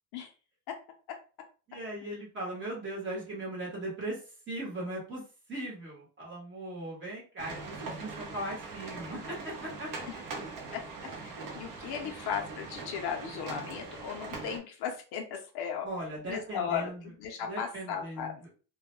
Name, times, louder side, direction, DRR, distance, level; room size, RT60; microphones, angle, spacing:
voice 1, 1.7-4.2 4.5-5.2 5.5-9.9 15.8-17.0 17.5-18.3, right 1 dB, 25° right, -4 dB, 1.0 m, -38 dB
sound 1, 7.4-14.6, right 3 dB, 45° right, 0.6 m, -41 dB
voice 2, 11.2-15.9 16.2-18.3, left 7 dB, 60° left, 3 dB, 0.5 m, -36 dB
2.2 x 2.1 x 2.9 m, 0.37 s
cardioid pair, 180°, 45 cm